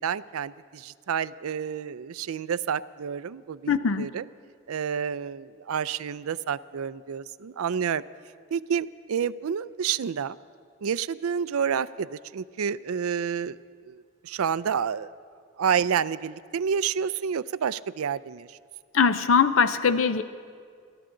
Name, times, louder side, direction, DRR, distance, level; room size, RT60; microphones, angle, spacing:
voice 1, 0.0-4.2 4.7-8.0 8.5-10.4 10.8-15.1 15.6-18.6, right 7 dB, 90° right, 17 dB, 0.4 m, -29 dB
voice 2, 3.7-4.1 18.9-20.2, left 6 dB, 70° left, 11 dB, 0.6 m, -21 dB
28.5 x 13.5 x 3.8 m, 2.1 s
head